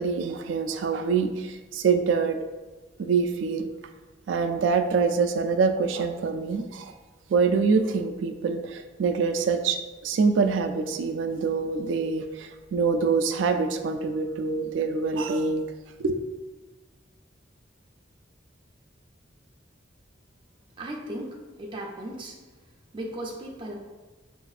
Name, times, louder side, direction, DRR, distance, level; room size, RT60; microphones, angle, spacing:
voice 1, 0.0-2.4 3.0-3.7 4.3-6.9 7.3-15.6 16.0-16.2, right 5 dB, 85° right, 7 dB, 0.3 m, -25 dB
voice 2, 20.8-22.3 22.9-23.7, right 1 dB, 25° right, -2 dB, 0.5 m, -36 dB
4.8 x 2.5 x 2.4 m, 1.3 s
head